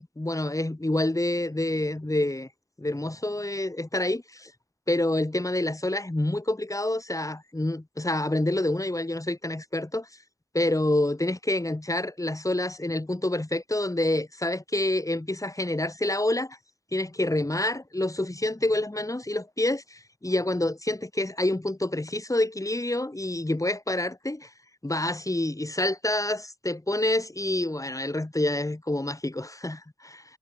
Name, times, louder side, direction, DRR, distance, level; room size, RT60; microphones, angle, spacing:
voice 1, 0.0-2.5 2.8-4.5 4.9-10.1 10.5-16.6 16.9-24.5 24.8-30.2, left 1 dB, 25° left, 6.0 m, -27 dB
cardioid pair, 45°, 12 cm